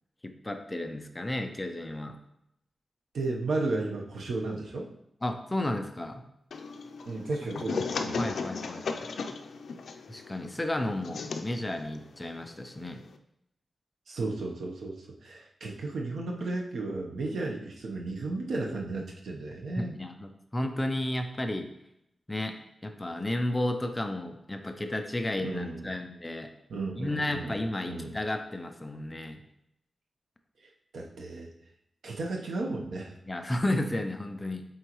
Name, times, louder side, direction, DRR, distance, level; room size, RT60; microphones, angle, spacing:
voice 1, 0.2-2.2 5.2-6.2 7.7-7.8 8.2-9.1 10.1-13.0 19.8-21.7 22.3-22.6 22.8-26.5 27.0-29.4 33.3-34.7, left 1 dB, 15° left, 6 dB, 0.5 m, -33 dB
voice 2, 3.1-4.9 7.0-8.3 14.1-20.0 25.4-25.9 26.7-27.5 27.9-28.1 30.9-31.5 32.0-33.1, right 2 dB, 80° right, 0 dB, 1.0 m, -34 dB
sound 1, 6.5-13.2, left 4 dB, 75° left, 0.4 m, -37 dB
7.9 x 3.9 x 3.1 m, 0.80 s
wide cardioid pair, 170°, 0 cm